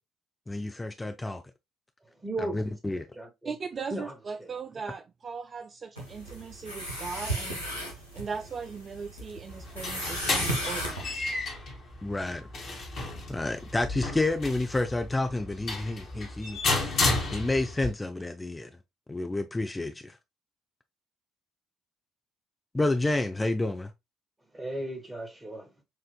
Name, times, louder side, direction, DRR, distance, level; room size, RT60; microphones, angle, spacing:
voice 1, 0.5-1.4 2.4-3.1 12.0-12.5 13.3-16.6 16.8-18.7 19.1-20.2 22.7-23.9, left 2 dB, 15° left, 0.5 m, -30 dB
voice 2, 2.2-2.6 2.9-3.5 3.9-4.1 4.4-4.5 24.5-25.7, right 1 dB, 20° right, 1.7 m, -36 dB
voice 3, 3.4-11.2, right 5 dB, 40° right, 0.3 m, -39 dB
sound 1, 6.0-11.1, right 1 dB, 90° right, 1.0 m, -35 dB
sound 2, 9.5-17.9, left 3 dB, 50° left, 1.5 m, -32 dB
6.5 x 2.5 x 2.2 m
figure-of-eight pair, 50°, 0 cm